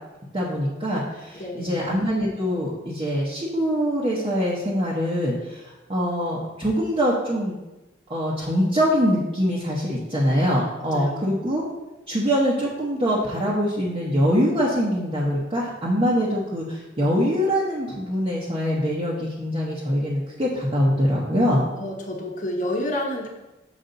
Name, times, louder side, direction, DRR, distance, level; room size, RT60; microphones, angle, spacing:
voice 1, 0.3-7.5 8.1-11.6 12.1-21.6, equal, 25° right, -7 dB, 1.0 m, -23 dB
voice 2, 1.3-1.8 10.9-11.4 21.8-23.3, left 1 dB, 40° left, 0 dB, 1.1 m, -29 dB
6.8 x 5.2 x 3.9 m, 1.0 s
head